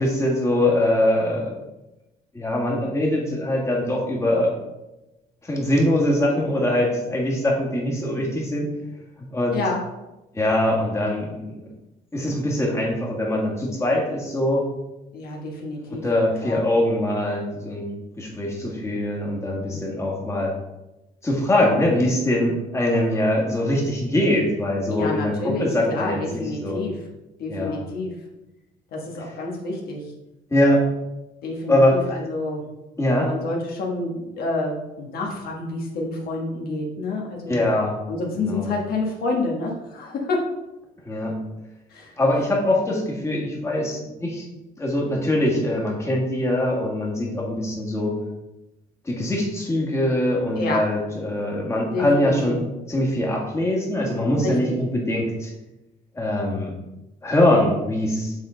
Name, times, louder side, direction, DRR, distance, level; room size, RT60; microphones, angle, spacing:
voice 1, 0.0-1.6 2.3-4.6 5.4-8.7 9.3-9.6 10.3-11.7 12.1-14.7 15.9-17.9 18.2-20.5 21.2-26.8 27.5-27.8 30.5-30.9 31.7-32.0 33.0-33.3 37.5-38.0 38.3-38.7 41.0-41.4 42.2-44.5 44.8-48.2 49.0-52.6 52.9-55.5 56.1-56.7 57.2-58.3, left 1 dB, 15° left, -2 dB, 1.7 m, -22 dB
voice 2, 15.1-16.0 16.4-16.6 19.7-19.9 24.9-27.1 27.4-28.1 28.9-30.0 31.4-32.6 33.2-37.7 38.1-40.4 41.9-42.1 50.6-50.8 51.9-52.5 54.4-54.7, left 2 dB, 65° left, -1 dB, 1.3 m, -28 dB
7.1 x 3.8 x 3.8 m, 0.98 s
cardioid pair, 110°, 17 cm